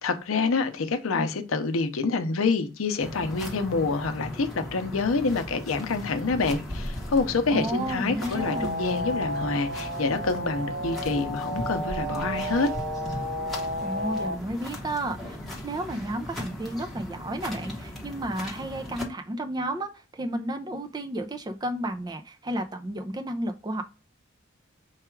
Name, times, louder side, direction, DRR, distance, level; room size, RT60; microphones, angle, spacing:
voice 1, 0.0-12.7, left 4 dB, 80° left, 0.6 m, -27 dB
sound 1, 3.0-19.0, left 1 dB, ahead, 0.9 m, -38 dB
voice 2, 7.5-8.7 13.8-15.4 15.6-23.8, right 1 dB, 20° right, 0.4 m, -32 dB
sound 2, 8.4-14.4, equal, 65° right, 0.7 m, -32 dB
4.7 x 2.3 x 4.4 m
head